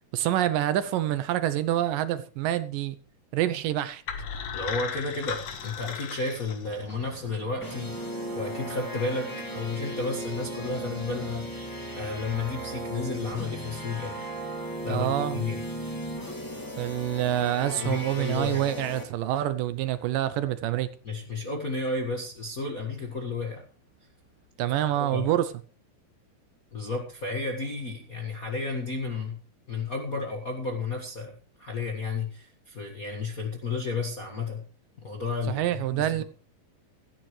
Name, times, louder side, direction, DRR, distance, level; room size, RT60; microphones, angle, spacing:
voice 1, 0.1-3.0 3.3-4.0 14.9-15.4 16.8-20.9 24.6-25.5 35.5-36.2, right 12 dB, 75° right, 2.2 m, -27 dB
sound 1, 4.1-7.1, left 7 dB, 55° left, 2.1 m, -36 dB
voice 2, 4.5-14.1 14.8-15.6 17.6-18.7 21.0-23.6 25.0-25.3 26.7-29.4 29.7-34.6 35.0-36.2, left 3 dB, 40° left, 1.3 m, -32 dB
sound 2, 6.6-23.6 23.9-24.4, right 5 dB, 10° right, 5.2 m, -51 dB
sound 3, 7.6-19.0, equal, 15° left, 0.7 m, -36 dB
16.0 x 13.5 x 3.2 m
omnidirectional pair, 4.2 m